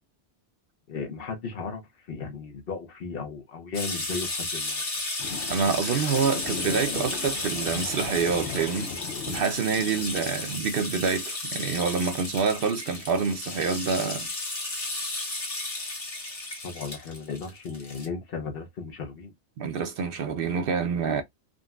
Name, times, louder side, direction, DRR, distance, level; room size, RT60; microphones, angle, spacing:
voice 1, 0.9-1.8 2.1-4.8 16.6-19.3, left 5 dB, 60° left, 0.9 m, -35 dB
sound 1, 3.7-18.1, left 2 dB, 35° left, 1.0 m, -33 dB
sound 2, 5.2-10.6, left 6 dB, 85° left, 1.0 m, -38 dB
voice 2, 5.5-8.9 9.3-14.3 19.6-21.2, right 5 dB, 65° right, 0.7 m, -27 dB
3.8 x 2.1 x 2.3 m
omnidirectional pair, 1.1 m